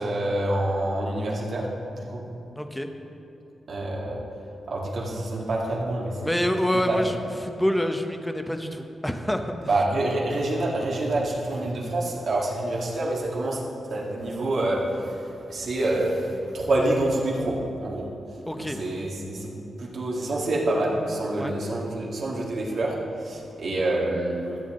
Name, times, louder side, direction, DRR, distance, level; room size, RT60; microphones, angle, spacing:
voice 1, 0.0-2.3 3.7-4.2 4.7-6.3 6.7-7.0 9.7-13.6 13.9-18.1 18.5-24.6, right 1 dB, 70° right, -3 dB, 2.0 m, -27 dB
voice 2, 2.6-2.9 6.2-9.7 18.5-18.8 21.4-21.5, equal, 5° left, 6 dB, 0.8 m, -27 dB
13.5 x 7.4 x 3.8 m, 3.0 s
cardioid pair, 65°, 0 cm